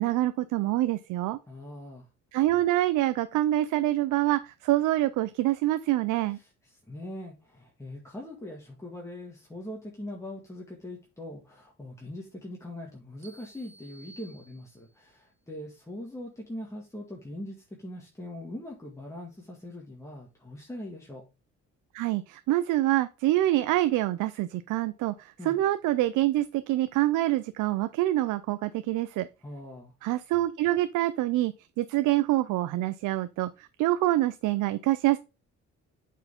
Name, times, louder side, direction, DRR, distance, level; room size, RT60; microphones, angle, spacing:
voice 1, 0.0-1.4 2.3-6.4 21.9-29.3 30.0-35.2, right 15 dB, 85° right, 0.5 m, -26 dB
voice 2, 1.5-2.1 6.3-21.2 25.4-25.6 29.4-29.9, left 1 dB, 10° left, 1.9 m, -41 dB
sound 1, 13.2-15.1, right 2 dB, 40° right, 1.3 m, -54 dB
7.9 x 4.7 x 3.5 m
cardioid pair, 90°, 30 cm